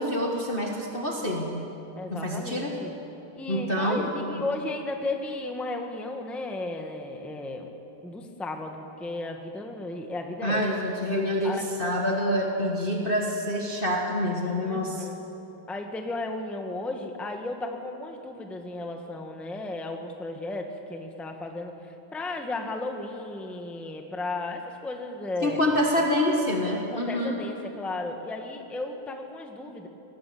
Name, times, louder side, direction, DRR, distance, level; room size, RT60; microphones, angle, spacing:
voice 1, 0.0-1.6 2.1-2.7 3.5-4.0 4.3-4.4 10.4-15.1 25.4-27.4, left 1 dB, 30° left, -1 dB, 1.7 m, -26 dB
voice 2, 2.0-2.9 3.3-7.7 8.0-10.6 11.4-12.0 14.6-15.2 15.7-25.6 26.9-29.9, left 2 dB, ahead, 3 dB, 1.2 m, -34 dB
20.5 x 19.0 x 7.9 m, 3.0 s
omnidirectional pair, 2.1 m